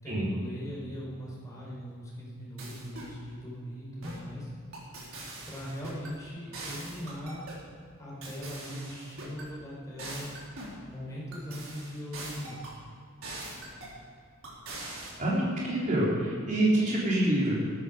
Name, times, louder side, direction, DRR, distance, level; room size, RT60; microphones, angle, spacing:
voice 1, 0.0-4.5 5.4-7.5 8.0-10.3 10.8-12.6, equal, 15° left, -5 dB, 4.8 m, -40 dB
sound 1, 2.6-3.2 4.0-4.3 4.7-6.1 6.5-7.6 8.2-9.5 10.0-10.8 11.3-12.8 13.2-14.0 14.4-15.1, right 2 dB, 75° right, 4.3 m, -42 dB
voice 2, 15.2-17.5, right 1 dB, 40° right, -6 dB, 3.9 m, -26 dB
14.5 x 13.5 x 5.3 m, 2.2 s
head